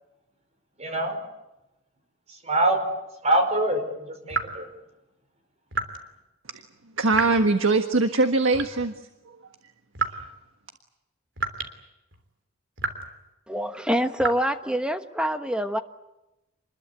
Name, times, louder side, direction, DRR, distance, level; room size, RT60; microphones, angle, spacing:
voice 1, 0.8-1.2 2.3-2.8 3.2-4.7, right 1 dB, 35° right, 6 dB, 5.1 m, -24 dB
sound 1, 4.3-4.6 5.7-6.0 7.1-7.5 8.5-9.0 9.9-10.3 11.4-11.8 12.1-12.2 12.8-13.2 14.2-14.3, right 4 dB, 65° right, 3.2 m, -30 dB
voice 2, 7.0-9.4, right 3 dB, 85° right, 7 dB, 1.5 m, -22 dB
voice 3, 13.5-15.8, equal, 5° right, 8 dB, 1.2 m, -26 dB
28.0 x 21.5 x 8.2 m, 0.96 s
head